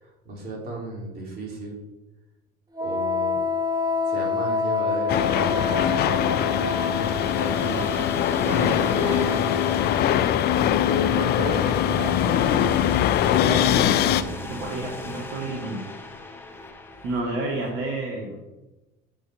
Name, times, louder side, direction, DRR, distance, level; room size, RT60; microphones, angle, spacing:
voice 1, 0.0-1.8 2.8-3.4 4.1-6.2 10.9-11.0, right 2 dB, 50° right, -1 dB, 3.2 m, -35 dB
Wind instrument woodwind instrument, 2.7-10.1, left 3 dB, 20° right, 1.1 m, -28 dB
sound 1, 5.1-14.2, left 11 dB, 50° left, 0.5 m, -22 dB
sound 2, 6.0-17.8, left 5 dB, 10° left, 1.0 m, -36 dB
voice 2, 7.5-7.9 8.4-9.5 10.8-12.9 13.4-15.9 17.0-18.4, right 2 dB, 70° right, -1 dB, 1.8 m, -31 dB
7.9 x 6.5 x 4.5 m, 1.0 s
cardioid pair, 115°, 21 cm